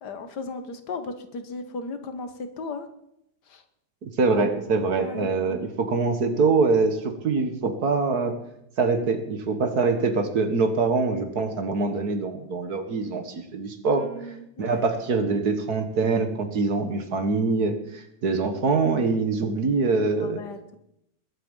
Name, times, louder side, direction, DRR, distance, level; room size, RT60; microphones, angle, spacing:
voice 1, 0.0-2.3 2.6-2.9 3.5-3.6 4.9-5.6 14.0-14.9 20.2-20.8, left 3 dB, 70° left, 9 dB, 1.8 m, -36 dB
voice 2, 4.0-8.3 8.8-14.1 14.6-20.4, right 4 dB, 60° right, 7 dB, 2.0 m, -24 dB
21.5 x 8.4 x 5.5 m, 0.80 s
omnidirectional pair, 1.9 m